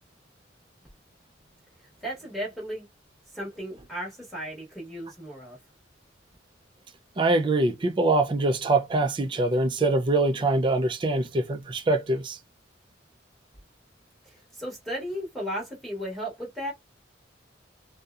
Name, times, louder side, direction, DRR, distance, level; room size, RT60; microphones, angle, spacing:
voice 1, 2.0-2.9 3.3-5.6 14.5-16.7, equal, ahead, 0.9 m, -35 dB
voice 2, 7.2-12.4, right 2 dB, 25° right, 0.3 m, -24 dB
2.7 x 2.0 x 2.3 m
head